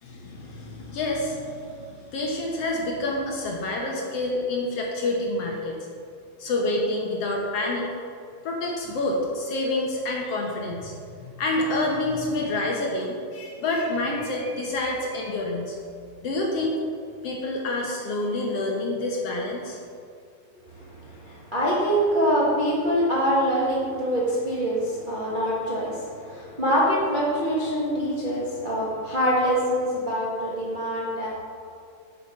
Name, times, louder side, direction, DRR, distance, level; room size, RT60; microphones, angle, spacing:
voice 1, 0.0-5.8 6.4-7.9 8.4-15.8 16.2-16.7 17.2-19.8, left 2 dB, 65° left, -1 dB, 1.7 m, -28 dB
voice 2, 20.8-31.3, equal, 90° right, -6 dB, 0.4 m, -24 dB
8.8 x 6.8 x 5.6 m, 2.4 s
omnidirectional pair, 3.8 m